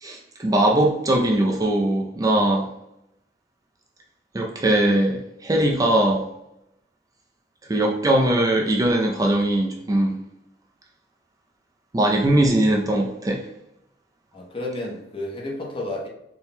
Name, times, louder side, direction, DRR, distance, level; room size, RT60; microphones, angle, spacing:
voice 1, 0.0-2.7 4.3-6.2 7.7-10.2 11.9-13.4, right 1 dB, 20° right, 0 dB, 0.4 m, -20 dB
voice 2, 14.3-16.1, left 1 dB, 30° left, -2 dB, 0.8 m, -31 dB
4.4 x 2.2 x 3.5 m, 0.83 s
head